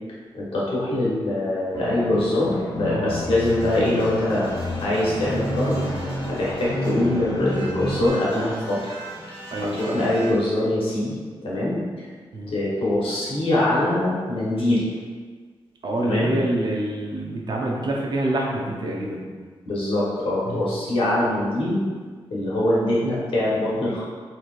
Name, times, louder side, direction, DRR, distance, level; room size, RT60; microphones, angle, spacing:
voice 1, 0.3-4.5 4.8-5.8 6.3-8.8 9.8-11.1 11.4-11.8 12.5-14.8 16.0-16.3 19.6-21.8 22.3-24.0, left 1 dB, 70° left, -7 dB, 1.2 m, -23 dB
sound 1, 1.7-8.1, left 1 dB, 35° left, 0.5 m, -30 dB
sound 2, 3.4-10.3, right 1 dB, 80° right, 1.3 m, -39 dB
voice 2, 9.5-10.2 12.3-12.5 15.8-19.2 20.4-20.6, right 1 dB, 50° right, -1 dB, 0.6 m, -26 dB
4.0 x 3.0 x 2.5 m, 1.5 s
wide cardioid pair, 145°, 10 cm